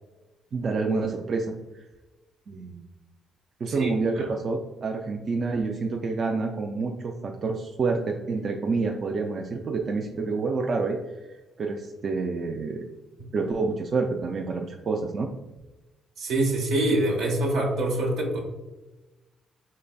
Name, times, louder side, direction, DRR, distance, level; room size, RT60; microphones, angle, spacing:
voice 1, 0.5-1.8 2.5-2.9 3.6-11.0 11.6-12.9 13.3-15.3, right 4 dB, 50° right, 2 dB, 0.3 m, -28 dB
voice 2, 3.7-4.2 16.2-18.4, right 1 dB, 80° right, 0 dB, 1.0 m, -25 dB
3.9 x 3.2 x 2.2 m, 1.1 s
cardioid pair, 90°, 0 cm